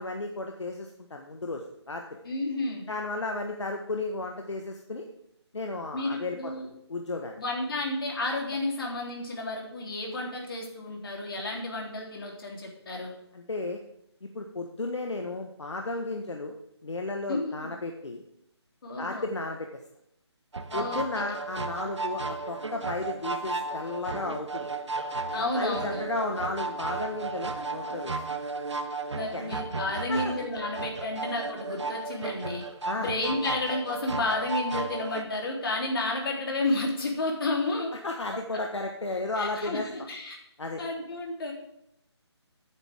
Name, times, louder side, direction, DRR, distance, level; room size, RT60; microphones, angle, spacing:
voice 1, 0.0-2.2 2.9-5.0 5.5-6.5 6.9-7.4 13.3-13.8 14.3-16.5 16.8-18.2 19.0-19.7 20.7-24.7 25.5-28.1 29.3-29.6 29.9-30.2 32.8-33.1 38.0-39.9 40.6-40.8, left 2 dB, 80° left, 3 dB, 1.6 m, -34 dB
voice 2, 2.2-2.9 5.9-6.7 7.4-13.1 17.3-17.6 18.8-19.3 20.7-21.0 21.2-21.3 25.3-26.0 29.1-32.6 33.0-37.9 39.4-40.4 40.8-41.5, left 2 dB, 50° left, 0 dB, 3.7 m, -31 dB
sound 1, 20.5-35.2, right 3 dB, 80° right, 1.3 m, -34 dB
14.5 x 9.2 x 3.7 m, 0.78 s
figure-of-eight pair, 160°, 15 cm